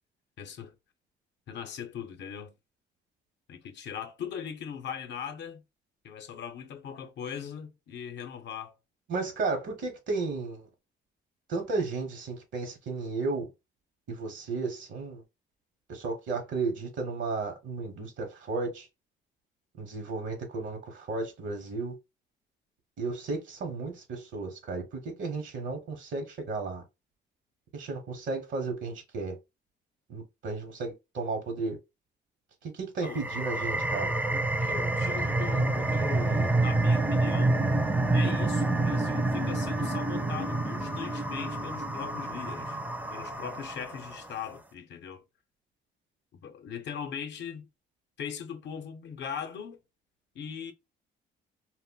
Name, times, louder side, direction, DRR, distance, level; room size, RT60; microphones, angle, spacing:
voice 1, 0.4-0.7 1.5-2.5 3.5-5.6 6.0-8.8 33.0-33.3 34.3-37.7 38.1-42.8 43.1-45.2 46.3-47.7 48.2-49.8 50.3-50.7, left 7 dB, 65° left, 0.6 m, -40 dB
voice 2, 9.1-10.7 11.5-13.5 14.1-15.2 15.9-18.9 19.8-21.9 23.0-26.8 27.7-29.4 30.1-31.8 32.6-34.1, right 3 dB, 70° right, 0.8 m, -34 dB
sound 1, 33.0-44.2, right 2 dB, 10° right, 0.4 m, -28 dB
2.1 x 2.1 x 3.6 m
cardioid pair, 90°, 20 cm